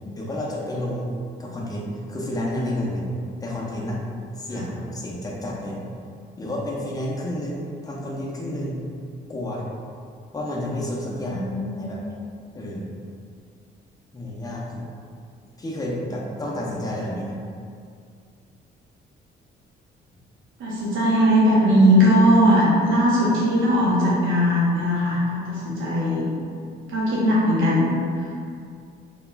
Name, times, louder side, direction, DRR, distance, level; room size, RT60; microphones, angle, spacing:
voice 1, 0.1-1.1 1.4-3.0 3.4-4.0 4.4-5.8 6.4-8.7 9.3-9.6 10.3-11.5 11.8-12.0 12.5-12.9 14.1-14.9 15.6-17.4, left 1 dB, 20° left, -4 dB, 0.6 m, -30 dB
voice 2, 11.1-11.9 20.6-26.3 26.9-28.4, equal, 85° right, -7 dB, 0.7 m, -19 dB
2.3 x 2.2 x 3.0 m, 2.3 s
cardioid pair, 90°, 20 cm